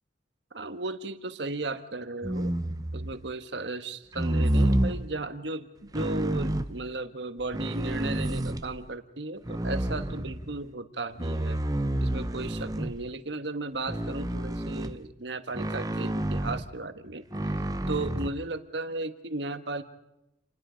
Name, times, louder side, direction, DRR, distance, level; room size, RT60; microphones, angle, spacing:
voice 1, 0.5-2.5 2.9-11.6 12.0-17.2 17.9-19.8, right 2 dB, 75° right, 9 dB, 1.4 m, -35 dB
sound 1, 2.2-3.2 4.1-5.0 5.9-6.7 7.4-8.8 9.4-10.6 11.2-13.1 13.9-15.0 15.5-16.7 17.3-18.3, right 1 dB, 20° right, 0.8 m, -29 dB
29.0 x 20.5 x 5.2 m, 0.89 s
head